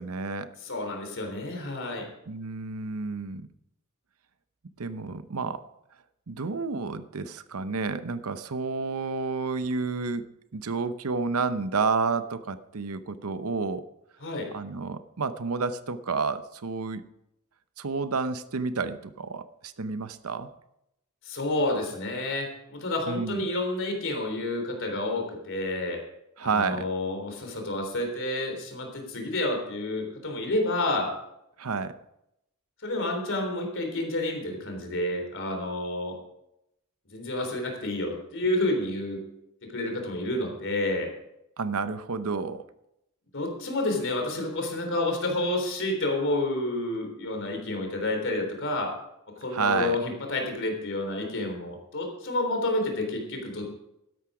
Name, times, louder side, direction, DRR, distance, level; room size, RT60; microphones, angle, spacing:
voice 1, 0.0-0.5 2.3-3.5 4.8-5.6 6.3-10.3 10.5-13.8 14.5-17.0 17.8-20.5 23.1-23.4 26.4-26.9 31.6-32.0 41.6-42.7 49.5-50.0, right 4 dB, 70° right, 12 dB, 0.8 m, -30 dB
voice 2, 0.6-2.1 14.2-14.5 21.2-26.0 26.4-31.1 32.8-36.2 37.1-39.2 39.6-41.1 43.3-48.9 49.4-53.7, left 2 dB, 60° left, 3 dB, 3.5 m, -29 dB
13.0 x 11.0 x 5.0 m, 0.84 s
head